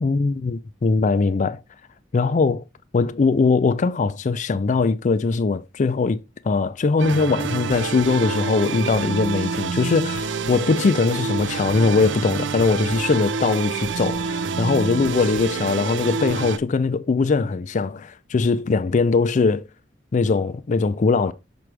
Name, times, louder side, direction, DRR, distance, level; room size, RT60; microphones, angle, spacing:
voice 1, 0.0-1.6 2.1-2.6 2.9-19.6 20.1-21.3, left 4 dB, 40° left, 0.4 m, -21 dB
sound 1, 7.0-16.6, right 5 dB, 80° right, 0.5 m, -27 dB
6.1 x 6.0 x 3.3 m
head